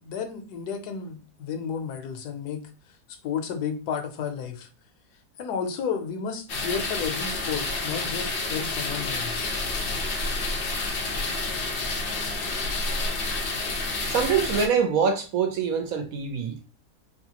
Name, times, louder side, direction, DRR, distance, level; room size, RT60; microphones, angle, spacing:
voice 1, 0.0-2.6 3.2-4.7 5.4-9.5, left 7 dB, 90° left, 6 dB, 1.2 m, -32 dB
sound 1, 6.5-14.7, left 3 dB, 50° left, 0.7 m, -29 dB
voice 2, 14.1-16.7, right 6 dB, 70° right, 5 dB, 1.2 m, -24 dB
3.9 x 2.4 x 2.8 m, 0.33 s
omnidirectional pair, 1.6 m